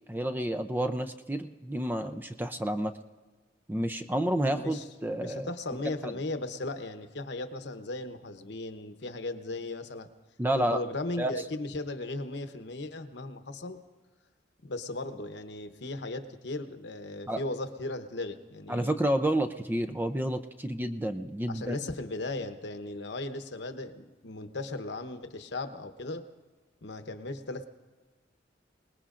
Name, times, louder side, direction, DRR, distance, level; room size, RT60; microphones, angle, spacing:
voice 1, 0.1-2.9 3.7-5.5 10.4-10.8 11.2-11.3 17.3-17.4 18.7-21.8, right 1 dB, 10° right, 8 dB, 0.5 m, -30 dB
voice 2, 4.5-4.9 5.2-10.1 10.5-13.8 14.6-19.0 21.5-26.2 26.8-27.7, left 2 dB, 70° left, 8 dB, 0.9 m, -37 dB
28.0 x 19.5 x 2.5 m, 1.3 s
head